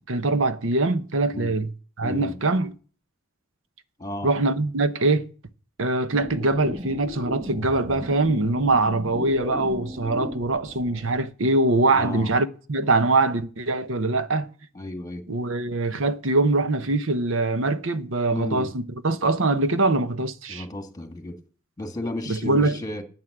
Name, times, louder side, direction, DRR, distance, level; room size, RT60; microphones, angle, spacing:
voice 1, 0.1-1.7 2.0-2.7 4.2-5.3 5.8-14.5 15.3-20.6 22.3-22.8, right 2 dB, 70° right, 1.0 m, -23 dB
voice 2, 2.0-2.4 4.0-4.3 11.9-12.3 14.7-15.2 18.3-18.8 20.5-21.4 21.8-23.0, left 1 dB, 20° left, 1.8 m, -33 dB
sound 1, 6.1-11.2, left 1 dB, 25° right, 2.2 m, -36 dB
9.6 x 9.2 x 8.0 m
head